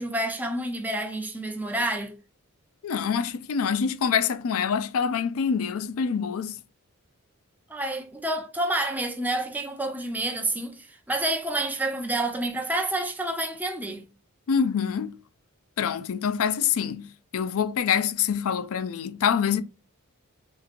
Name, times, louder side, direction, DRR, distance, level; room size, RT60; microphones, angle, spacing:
voice 1, 0.0-2.1 7.7-14.1, right 1 dB, 10° right, 0.5 m, -29 dB
voice 2, 2.8-6.6 14.5-15.2 15.8-19.6, left 7 dB, 65° left, 0.4 m, -26 dB
3.7 x 2.9 x 2.5 m
head